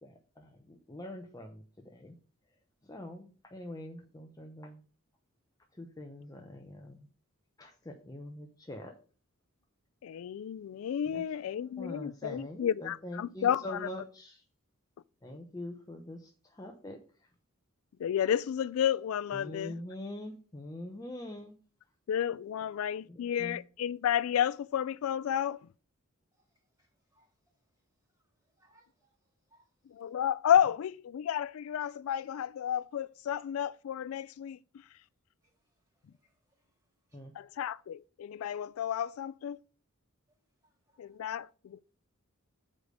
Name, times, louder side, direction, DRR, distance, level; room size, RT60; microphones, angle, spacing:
voice 1, 0.0-2.2 2.8-4.8 5.7-7.1 7.6-9.0 11.1-11.4 11.8-14.4 15.2-17.0 19.3-21.5 23.1-23.6 37.1-37.3, left 1 dB, 15° left, 0.8 m, -44 dB
voice 2, 10.0-13.9 18.0-19.7 22.1-25.6 29.9-34.6 37.4-39.6 41.0-41.8, left 9 dB, 70° left, 0.3 m, -31 dB
voice 3, 26.8-27.3 28.6-29.1 29.5-29.7 35.4-35.5 36.2-36.7 37.1-37.2 40.6-41.0, right 1 dB, 15° right, 3.1 m, -69 dB
7.2 x 4.9 x 6.5 m
head